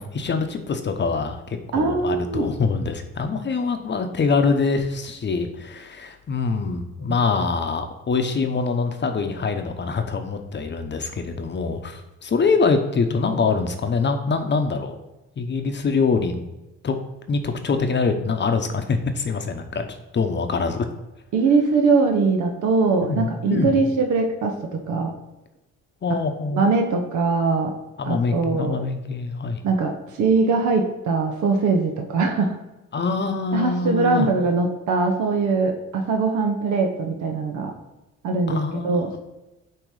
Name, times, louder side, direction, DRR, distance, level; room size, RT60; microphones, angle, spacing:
voice 1, 0.0-15.0 15.4-16.5 16.8-17.0 17.3-19.9 20.1-20.9 23.0-23.8 26.0-26.7 28.0-29.6 32.9-34.3 38.5-39.2, left 4 dB, 35° left, 6 dB, 0.9 m, -24 dB
voice 2, 1.7-2.5 21.3-25.1 26.5-27.7 28.0-28.8 29.6-29.9 30.2-32.6 33.5-37.7 38.2-38.6 38.8-39.2, right 4 dB, 75° right, 3 dB, 1.0 m, -21 dB
8.8 x 3.0 x 4.8 m, 1.0 s
cardioid pair, 90°, 30 cm